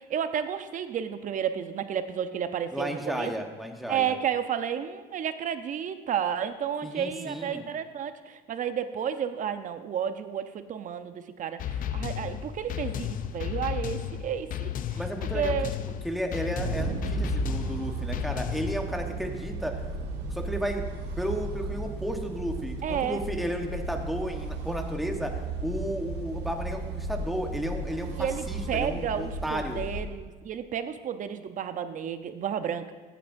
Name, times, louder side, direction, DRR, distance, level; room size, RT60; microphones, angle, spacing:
voice 1, 0.0-3.3 3.9-15.0 15.3-15.7 22.8-23.2 28.1-32.9, right 8 dB, 50° right, 10 dB, 0.7 m, -31 dB
voice 2, 2.7-4.1 6.8-7.6 14.9-15.5 16.0-19.7 20.3-20.9 21.2-29.9, equal, ahead, 3 dB, 1.1 m, -33 dB
sound 1, 11.6-18.8, left 9 dB, 55° left, 0.5 m, -33 dB
sound 2, 16.6-30.0, right 3 dB, 80° right, 1.5 m, -35 dB
15.0 x 9.3 x 2.6 m, 1.4 s
cardioid pair, 110°, 17 cm